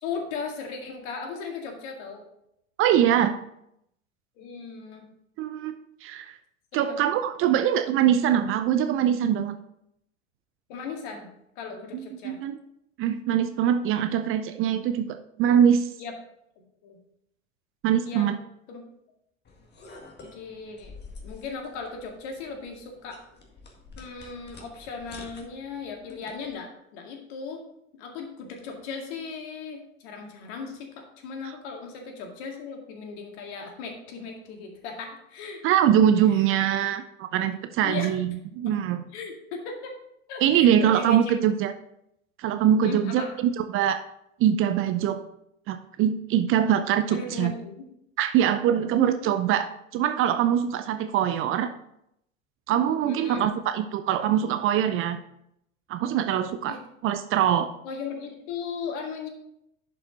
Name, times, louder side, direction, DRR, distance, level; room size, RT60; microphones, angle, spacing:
voice 1, 0.0-2.2 4.4-5.1 6.7-7.0 7.4-7.6 10.7-12.4 16.0-16.1 16.6-17.0 18.0-18.4 18.7-18.8 20.2-20.9 21.2-23.2 24.0-27.6 27.9-35.9 36.3-36.4 37.8-38.1 38.6-38.8 39.1-39.9 40.3-41.4 42.8-43.3 47.1-47.8 48.7-49.3 53.0-53.5 56.7-56.8 57.8-59.3, left 5 dB, 55° left, 3 dB, 2.1 m, -37 dB
voice 2, 2.8-3.4 5.4-5.8 6.0-6.3 6.7-9.6 11.9-12.6 13.0-15.9 17.8-18.4 35.6-39.0 40.4-41.7 42.4-44.0 44.4-45.2 45.7-47.5 48.2-49.7 49.9-51.7 52.7-55.2 55.9-56.8 57.0-57.7, right 9 dB, 35° right, 9 dB, 0.5 m, -23 dB
sound 1, 19.4-26.6, left 3 dB, 25° left, 1.8 m, -48 dB
11.0 x 5.3 x 4.0 m, 0.77 s
figure-of-eight pair, 80°, 40 cm